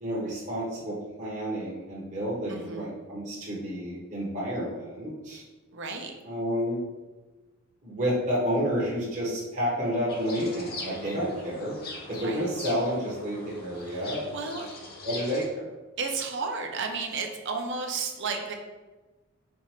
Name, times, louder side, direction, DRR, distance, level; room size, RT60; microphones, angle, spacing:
voice 1, 0.0-5.4 6.2-6.8 7.8-11.7 12.1-14.3 15.0-15.7, equal, 35° right, -6 dB, 0.9 m, -30 dB
voice 2, 2.5-2.9 5.7-6.1 12.2-12.5 13.9-14.0 14.3-14.7 16.0-18.5, right 4 dB, 60° right, 3 dB, 0.6 m, -33 dB
sound 1, 10.1-15.4, left 3 dB, 50° left, 0.9 m, -41 dB
4.5 x 2.5 x 4.3 m, 1.2 s
head